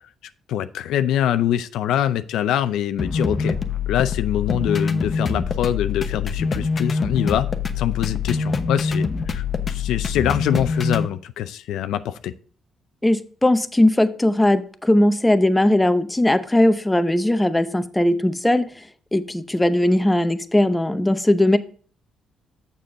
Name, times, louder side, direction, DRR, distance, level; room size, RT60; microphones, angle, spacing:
voice 1, 0.5-3.6 3.9-7.5 7.8-12.3, left 11 dB, 85° left, 12 dB, 0.5 m, -24 dB
sound 1, 3.0-11.1, left 5 dB, 40° left, 0.9 m, -24 dB
voice 2, 13.0-18.7 19.1-21.6, left 1 dB, 10° left, 10 dB, 0.7 m, -19 dB
7.0 x 6.7 x 3.7 m, 0.43 s
cardioid pair, 90°, 0 cm